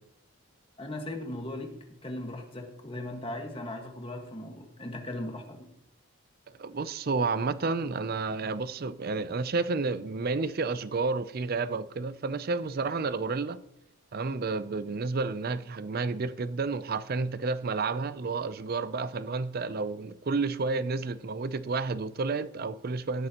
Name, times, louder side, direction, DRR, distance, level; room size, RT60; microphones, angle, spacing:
voice 1, 0.8-1.7 2.0-5.6, left 1 dB, 25° left, 1.5 m, -38 dB
voice 2, 6.6-13.6 14.1-23.3, right 4 dB, 45° right, 0.4 m, -31 dB
17.0 x 8.4 x 2.9 m
head